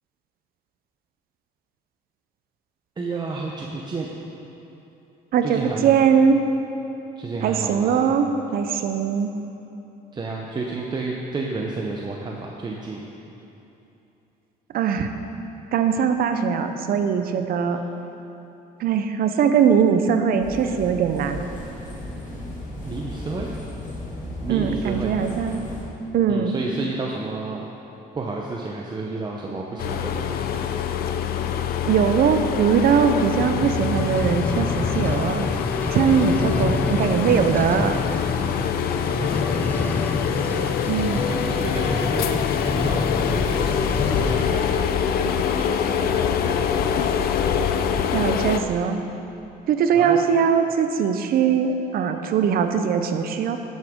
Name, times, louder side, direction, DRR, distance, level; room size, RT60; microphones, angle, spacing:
voice 1, 3.0-4.4 5.4-6.0 7.2-8.1 10.1-13.0 17.7-17.8 22.9-23.5 24.4-25.2 26.3-27.7 28.1-30.4 36.3-36.9 39.1-43.1 43.3-47.2 49.9-50.3, right 3 dB, 25° right, -1 dB, 0.7 m, -32 dB
voice 2, 5.3-6.4 7.4-9.3 14.7-15.1 15.7-17.8 18.8-21.4 24.5-25.7 26.1-26.6 31.8-35.5 35.9-38.0 40.9-41.2 48.1-49.0 49.7-53.6, right 7 dB, 60° right, 7 dB, 0.6 m, -21 dB
sound 1, 20.4-25.9, left 1 dB, 50° left, 2.2 m, -35 dB
sound 2, 29.8-48.6, left 7 dB, 65° left, 0.5 m, -24 dB
sound 3, 33.3-44.6 45.2-45.3, left 3 dB, 10° left, 0.3 m, -29 dB
11.0 x 7.9 x 3.7 m, 2.9 s
cardioid pair, 110°, 17 cm